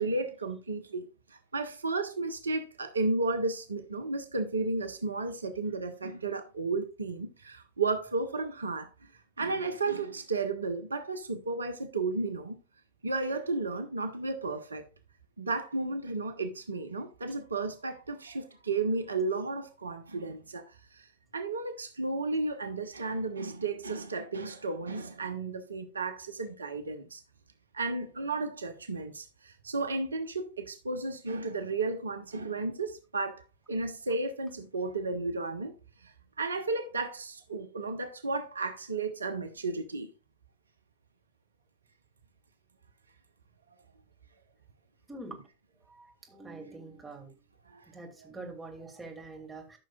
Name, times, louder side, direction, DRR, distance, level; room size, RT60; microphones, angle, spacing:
voice 1, 0.0-9.1 9.4-12.6 13.0-14.8 15.4-21.1 21.3-27.2 27.7-35.8 36.0-40.1 47.7-47.9 48.2-48.3, right 3 dB, 75° right, 0.8 m, -33 dB
voice 2, 45.1-45.4 45.9-47.3 47.9-49.8, right 2 dB, 10° right, 2.5 m, -45 dB
14.0 x 6.1 x 2.4 m
figure-of-eight pair, 90°, 0 cm